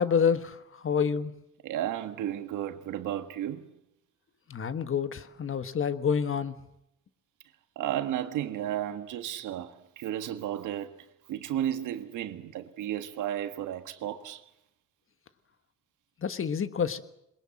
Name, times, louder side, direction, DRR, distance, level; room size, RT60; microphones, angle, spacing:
voice 1, 0.0-1.3 4.5-6.5 16.2-17.0, left 7 dB, 45° left, 1.5 m, -28 dB
voice 2, 1.6-3.7 7.7-11.0 11.3-14.4, right 11 dB, 85° right, 1.6 m, -33 dB
22.0 x 21.0 x 7.6 m
cardioid pair, 90°, 30 cm